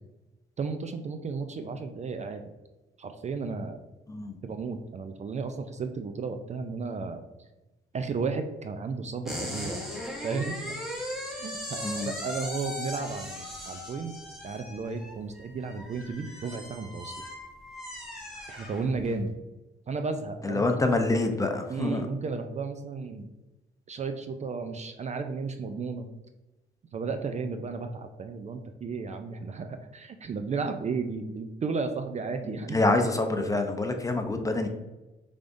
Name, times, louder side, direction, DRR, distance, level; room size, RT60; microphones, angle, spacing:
voice 1, 0.6-2.4 3.0-3.8 4.4-7.2 7.9-9.8 10.2-10.7 11.3-14.2 14.4-17.2 18.5-19.3 19.9-20.6 21.7-23.3 23.9-26.1 26.9-32.8, right 4 dB, 35° right, 7 dB, 0.4 m, -33 dB
sound 1, 9.2-19.2, left 1 dB, ahead, 1.2 m, -38 dB
voice 2, 11.8-12.1 20.4-22.1 32.4-34.7, left 2 dB, 15° left, 5 dB, 0.6 m, -26 dB
5.1 x 3.4 x 2.6 m, 1.1 s
cardioid pair, 90°, 20 cm